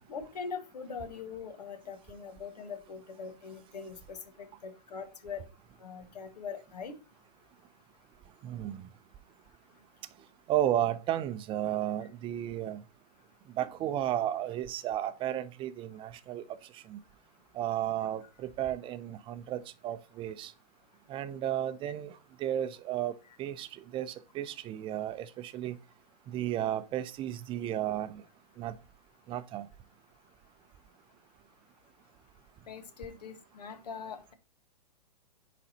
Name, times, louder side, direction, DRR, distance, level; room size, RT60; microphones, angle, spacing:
voice 1, 0.1-4.2 4.6-5.4 5.8-6.9 32.7-34.3, left 5 dB, 75° left, 1.5 m, -42 dB
voice 2, 8.4-8.9 10.5-12.8 13.5-16.4 16.7-17.0 17.5-20.5 21.1-25.8 26.3-28.2 28.6-28.8 29.3-29.7, right 12 dB, 25° right, 0.5 m, -33 dB
9.7 x 4.1 x 2.9 m
hypercardioid pair, 120°, 21 cm